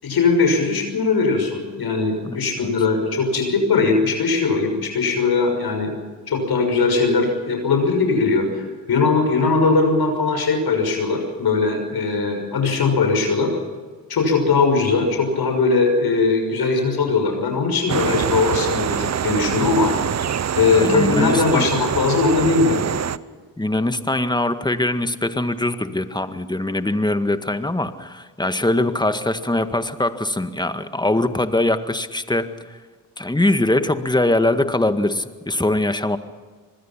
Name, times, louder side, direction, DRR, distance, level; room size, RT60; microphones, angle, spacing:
voice 1, 0.0-5.9 6.3-13.5 14.1-19.9 20.5-22.8, left 4 dB, 55° left, 4 dB, 6.2 m, -20 dB
voice 2, 2.2-2.7 20.7-21.7 23.6-32.8 33.2-36.2, left 1 dB, 10° left, 10 dB, 1.8 m, -22 dB
sound 1, 17.9-23.2, right 9 dB, 35° right, 0.8 m, -24 dB
26.0 x 20.5 x 5.9 m, 1.5 s
hypercardioid pair, 50°, 45 cm